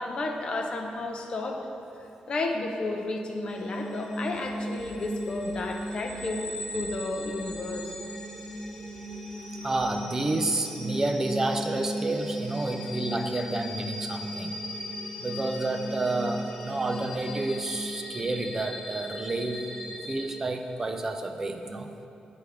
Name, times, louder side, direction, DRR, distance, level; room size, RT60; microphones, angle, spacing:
voice 1, 0.0-1.7 2.3-7.9, left 2 dB, 40° left, 3 dB, 0.6 m, -32 dB
sound 1, 3.5-20.3, equal, 15° left, 0.9 m, -36 dB
sound 2, 4.8-10.0, left 5 dB, 60° left, 1.7 m, -53 dB
voice 2, 9.6-14.6 15.2-21.9, right 2 dB, 20° right, 5 dB, 0.4 m, -30 dB
9.7 x 3.4 x 4.9 m, 2.8 s
wide cardioid pair, 170°, 2 cm